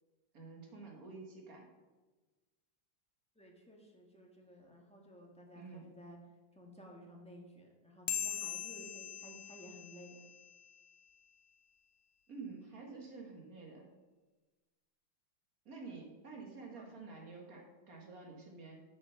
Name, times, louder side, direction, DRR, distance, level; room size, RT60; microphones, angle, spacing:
voice 1, 0.3-1.7 5.5-5.9 12.3-13.9 15.7-18.8, right 4 dB, 45° right, 1 dB, 2.0 m, -49 dB
voice 2, 3.3-6.2 6.5-10.2 16.8-16.9, equal, 5° left, -1 dB, 1.3 m, -55 dB
sound 1, 8.1-10.9, left 9 dB, 70° left, 1.0 m, -41 dB
7.8 x 7.5 x 5.8 m, 1.2 s
omnidirectional pair, 2.2 m